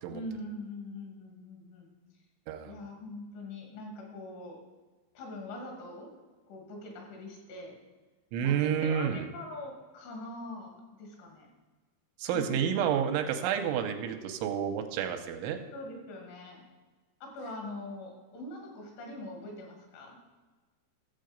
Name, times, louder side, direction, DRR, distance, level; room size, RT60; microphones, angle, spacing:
voice 1, 0.1-1.9 2.7-4.6 5.2-6.1 6.5-7.7 8.4-11.5 12.2-12.6 15.7-16.6 17.2-20.2, left 1 dB, 75° left, 1 dB, 4.9 m, -42 dB
voice 2, 8.3-9.3 12.2-15.6, right 8 dB, 85° right, 6 dB, 3.2 m, -30 dB
13.5 x 7.7 x 5.3 m, 1.3 s
omnidirectional pair, 5.5 m